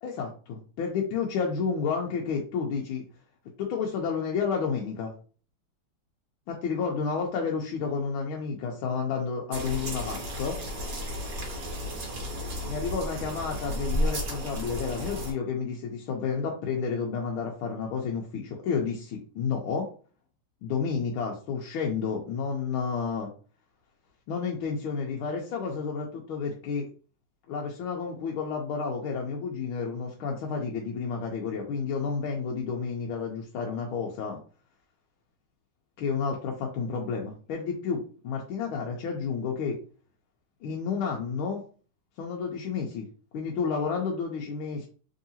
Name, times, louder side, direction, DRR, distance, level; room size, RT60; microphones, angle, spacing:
voice 1, 0.0-3.0 3.6-5.1 6.5-10.6 12.6-19.9 20.6-23.3 24.3-26.9 27.5-34.4 36.0-39.8 40.6-41.6 42.2-43.1 43.3-44.9, left 5 dB, 75° left, 0 dB, 1.5 m, -31 dB
sound 1, 9.5-15.3, equal, 50° right, 1.5 m, -33 dB
3.7 x 3.4 x 2.7 m, 0.40 s
omnidirectional pair, 2.4 m